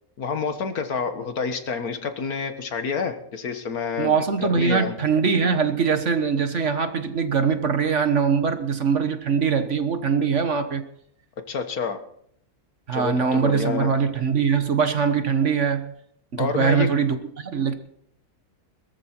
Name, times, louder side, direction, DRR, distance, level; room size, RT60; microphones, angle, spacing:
voice 1, 0.2-5.0 11.5-12.0 12.9-13.9 16.4-16.9, left 5 dB, 70° left, 8 dB, 1.9 m, -28 dB
voice 2, 4.0-10.8 12.9-15.9 16.3-17.7, right 6 dB, 50° right, 9 dB, 1.5 m, -22 dB
21.5 x 14.0 x 4.5 m, 0.69 s
omnidirectional pair, 1.7 m